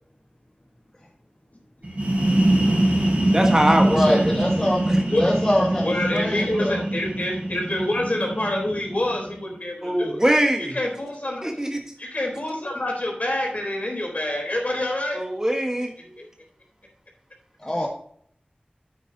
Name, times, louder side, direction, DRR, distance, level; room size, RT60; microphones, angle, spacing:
sound 1, 1.8-9.4, right 1 dB, 45° right, 4.1 m, -23 dB
voice 1, 3.3-4.3 4.9-5.0 9.8-10.7 11.4-11.8 15.1-15.9, right 1 dB, 20° right, 2 dB, 1.4 m, -22 dB
voice 2, 3.8-4.8 5.2-6.8 17.6-17.9, left 1 dB, 20° left, -3 dB, 1.7 m, -24 dB
voice 3, 5.8-10.2 10.6-11.5 12.0-15.2 16.0-16.3, left 1 dB, 55° left, 0 dB, 3.8 m, -27 dB
9.2 x 8.9 x 2.8 m, 0.63 s
wide cardioid pair, 55°, 3 cm